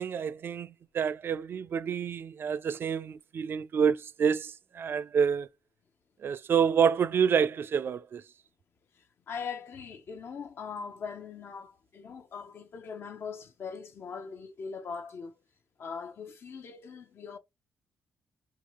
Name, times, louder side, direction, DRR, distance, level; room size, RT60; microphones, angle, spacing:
voice 1, 0.0-5.5 6.2-8.2, right 7 dB, 55° right, 0.4 m, -28 dB
voice 2, 8.9-15.4 15.8-17.4, left 5 dB, 60° left, 0.7 m, -41 dB
3.9 x 2.3 x 3.0 m
cardioid pair, 65°, 4 cm